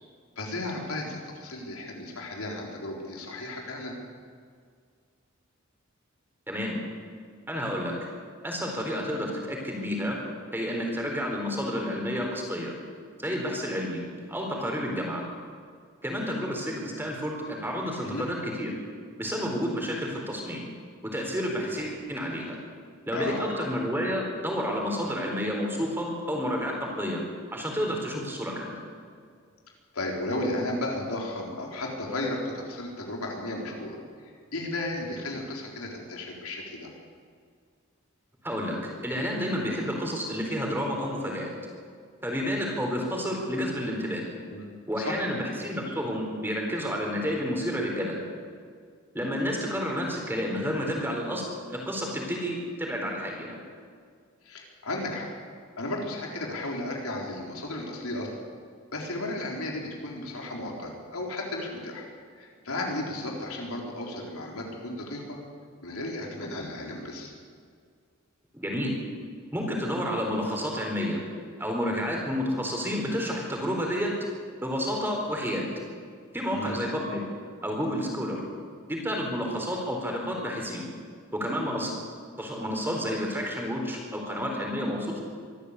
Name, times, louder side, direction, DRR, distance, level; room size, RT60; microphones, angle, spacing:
voice 1, 0.4-4.0 18.0-18.3 23.1-23.5 29.9-34.0 34.5-36.9 44.5-44.7 45.0-45.2 54.4-55.3 55.7-58.3 58.9-62.1 62.4-65.4 65.8-67.3 76.5-76.9, left 1 dB, 85° left, -1 dB, 4.1 m, -34 dB
voice 2, 6.5-6.8 7.5-7.9 8.4-10.2 10.5-12.7 13.2-14.0 14.3-15.2 16.0-18.7 19.2-20.7 21.1-22.6 23.1-27.2 27.5-28.8 38.4-38.8 39.0-41.5 42.2-44.2 44.9-48.2 49.1-51.4 51.7-53.6 68.5-68.9 69.5-71.2 71.6-74.1 74.6-75.7 76.3-77.3 77.6-78.4 78.9-80.9 81.3-81.9 82.4-85.2, equal, 10° right, 0 dB, 4.2 m, -30 dB
24.0 x 13.5 x 8.3 m, 2.1 s
head